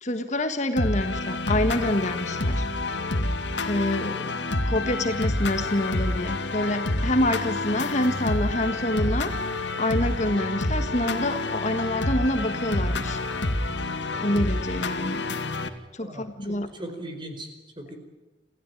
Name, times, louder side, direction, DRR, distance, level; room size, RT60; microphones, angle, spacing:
voice 1, 0.0-2.7 3.6-4.4 4.6-9.4 9.8-13.2 14.2-15.3 15.9-16.7, left 1 dB, 40° left, 8 dB, 1.6 m, -27 dB
sound 1, 0.8-15.7, left 2 dB, 80° left, 2.2 m, -28 dB
voice 2, 16.0-17.5 17.8-18.0, right 1 dB, 25° right, 6 dB, 4.7 m, -38 dB
28.5 x 15.5 x 9.2 m, 1.2 s
head